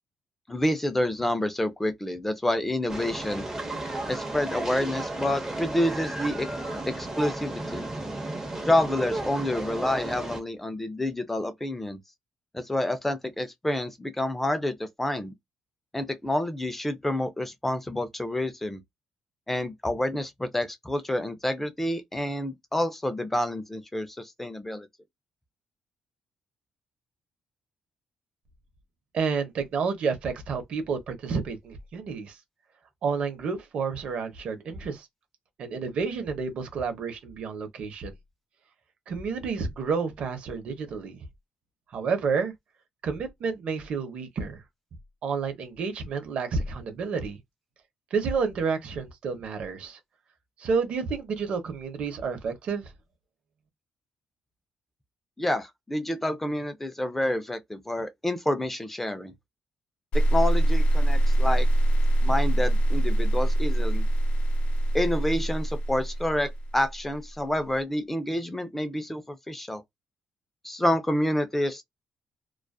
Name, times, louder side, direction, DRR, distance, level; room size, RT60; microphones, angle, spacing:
voice 1, 0.5-3.5 4.1-6.5 6.9-7.8 8.7-12.0 12.5-15.3 15.9-18.8 19.5-24.9 55.4-59.3 60.1-61.7 62.2-64.0 64.9-69.8 70.6-71.8, left 1 dB, 10° left, 0.5 m, -28 dB
sound 1, 2.9-10.4, right 2 dB, 20° right, 0.9 m, -34 dB
voice 2, 29.1-32.4 33.0-35.1 35.6-38.1 39.1-41.2 41.9-42.5 43.0-44.6 45.2-47.4 48.1-50.0 50.6-52.9, right 5 dB, 65° right, 0.8 m, -30 dB
sound 2, 60.1-67.3, right 1 dB, 70° left, 0.7 m, -23 dB
2.4 x 2.3 x 2.3 m
cardioid pair, 105°, 2 cm